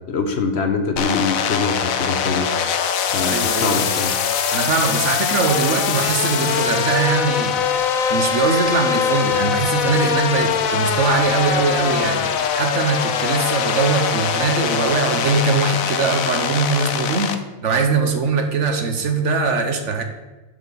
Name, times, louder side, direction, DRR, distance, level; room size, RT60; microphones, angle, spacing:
voice 1, 0.1-2.5 3.1-4.1, left 4 dB, 55° left, 6 dB, 1.0 m, -23 dB
sound 1, 1.0-17.4, left 7 dB, 75° left, 1.1 m, -22 dB
voice 2, 3.3-3.8 4.5-7.6 8.1-12.2 12.5-17.3 17.6-20.0, right 4 dB, 60° right, 6 dB, 1.2 m, -21 dB
sound 2, 7.4-12.5, right 3 dB, 35° right, 1.0 m, -38 dB
7.8 x 5.0 x 6.9 m, 1.1 s
omnidirectional pair, 1.5 m